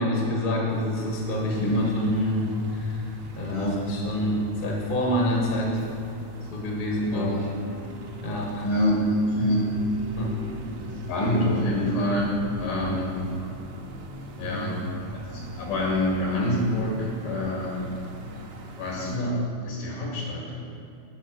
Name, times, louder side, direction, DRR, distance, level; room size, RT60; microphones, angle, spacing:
voice 1, 0.0-5.8 6.5-7.5 8.2-8.7 10.2-10.3 12.7-13.0 14.4-14.7, left 1 dB, 45° left, -2 dB, 0.6 m, -27 dB
sound 1, 0.7-19.2, right 2 dB, 70° right, 2.0 m, -41 dB
voice 2, 1.5-1.9 3.5-3.9 7.1-7.4 8.6-9.7 11.1-13.2 14.4-14.8 15.2-17.8 18.8-20.6, left 1 dB, 90° left, -3 dB, 3.5 m, -26 dB
8.4 x 5.5 x 6.1 m, 2.5 s
omnidirectional pair, 3.6 m